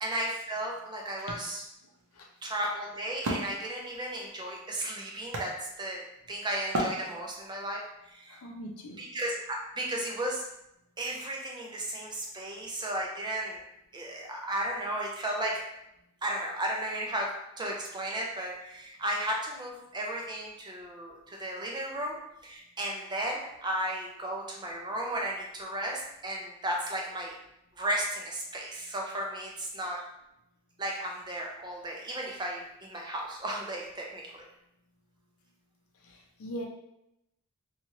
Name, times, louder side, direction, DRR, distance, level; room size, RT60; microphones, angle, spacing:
voice 1, 0.0-1.7 2.4-8.4 9.0-10.4 11.0-13.6 13.9-15.6 16.2-17.3 17.6-22.2 22.4-27.3 27.8-30.0 30.8-34.5, right 1 dB, 20° right, 0 dB, 0.4 m, -34 dB
Wood, 1.8-6.2 6.7-7.6, right 1 dB, 65° right, 0.6 m, -36 dB
voice 2, 8.4-9.0 36.4-36.7, equal, 65° left, 1 dB, 0.5 m, -38 dB
2.9 x 2.3 x 2.9 m, 0.83 s
head